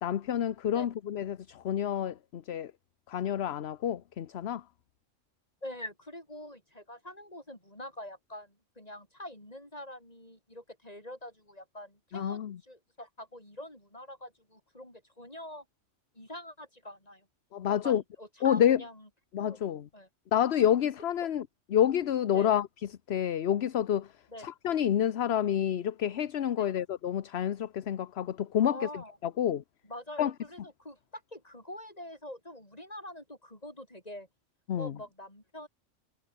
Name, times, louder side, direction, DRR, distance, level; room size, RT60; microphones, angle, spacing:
voice 1, 0.0-2.7 3.1-4.6 12.1-12.6 17.5-18.0 18.4-18.8 19.3-19.9 20.3-21.5 21.7-22.7 23.1-24.1 24.4-28.8 29.4-29.6 30.2-30.3 34.7-34.9, left 10 dB, 60° left, 1.0 m, -28 dB
voice 2, 5.6-15.6 16.1-17.3 17.7-19.1 19.4-19.7 19.9-20.1 21.2-21.3 22.3-22.5 24.3-24.5 26.6-26.8 28.6-29.2 29.8-34.3 34.8-35.7, left 1 dB, 30° left, 7.5 m, -45 dB
omnidirectional pair, 1.3 m